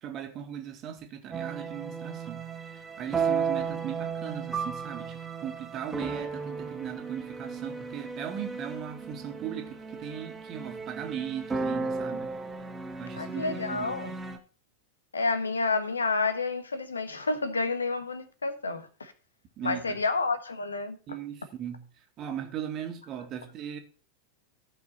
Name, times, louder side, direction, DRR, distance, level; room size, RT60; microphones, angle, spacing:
voice 1, 0.0-12.3 13.0-14.0 19.6-20.0 21.1-21.8 22.2-23.8, right 9 dB, 35° right, 1.8 m, -38 dB
sound 1, 1.3-14.4, right 5 dB, 15° right, 1.4 m, -35 dB
voice 2, 13.2-14.1 15.1-19.1 19.6-21.2, left 3 dB, 75° left, 1.2 m, -30 dB
14.0 x 5.9 x 4.3 m
figure-of-eight pair, 90°, 0 cm